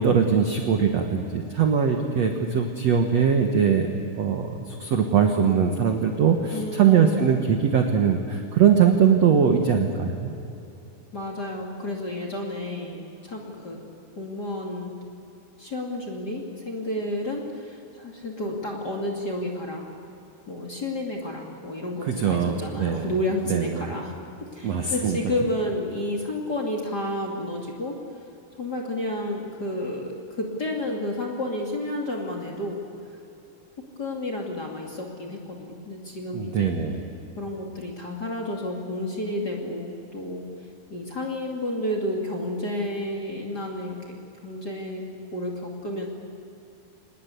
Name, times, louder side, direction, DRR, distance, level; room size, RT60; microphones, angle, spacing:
voice 1, 0.0-10.3 22.0-23.1 23.5-23.9 24.6-25.2 36.3-37.0, right 7 dB, 75° right, 4 dB, 1.5 m, -21 dB
voice 2, 6.5-7.2 11.1-14.9 15.6-19.9 20.5-24.2 24.5-28.0 28.6-32.8 34.0-36.8 37.4-40.4 40.9-45.0 45.3-46.1, left 1 dB, 30° left, -1 dB, 2.2 m, -31 dB
26.5 x 20.0 x 8.3 m, 2.9 s
omnidirectional pair, 5.2 m